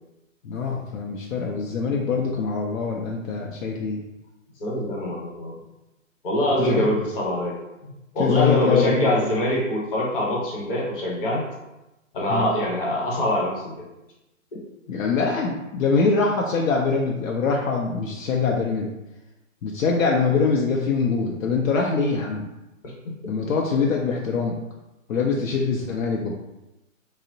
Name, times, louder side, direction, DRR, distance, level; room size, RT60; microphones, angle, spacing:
voice 1, 0.4-4.0 6.6-6.9 7.8-7.9 8.2-9.0 12.3-12.5 14.9-18.9 19.6-22.5 23.3-24.6 25.1-26.3, left 4 dB, 75° left, -1 dB, 0.5 m, -23 dB
voice 2, 4.6-5.6 6.2-7.6 8.1-11.4 12.1-13.9 14.5-14.6 23.0-23.5, left 1 dB, 40° left, -3 dB, 0.9 m, -24 dB
2.8 x 2.0 x 2.6 m, 0.98 s
hypercardioid pair, 135°, 41 cm